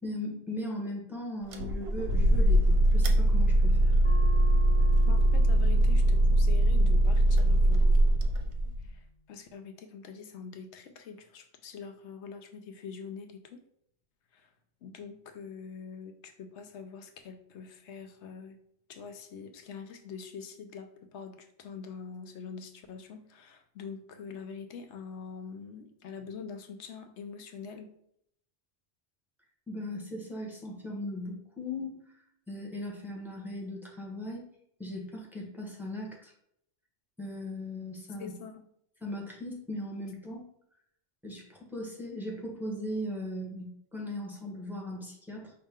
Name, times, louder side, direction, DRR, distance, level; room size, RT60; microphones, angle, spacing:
voice 1, 0.0-4.0 29.7-32.2 32.5-34.4 34.8-36.3 37.2-38.3 39.0-40.4 41.2-45.5, left 1 dB, ahead, -2 dB, 1.0 m, -38 dB
sound 1, 1.5-8.9, right 1 dB, 65° right, 0.8 m, -22 dB
sound 2, 4.0-9.2, left 1 dB, 35° left, 0.4 m, -46 dB
voice 2, 5.1-7.9 8.8-13.6 14.3-14.5 14.8-18.6 18.9-27.9 38.2-38.6, left 6 dB, 85° left, 7 dB, 0.9 m, -44 dB
5.2 x 2.8 x 3.6 m, 0.70 s
omnidirectional pair, 1.1 m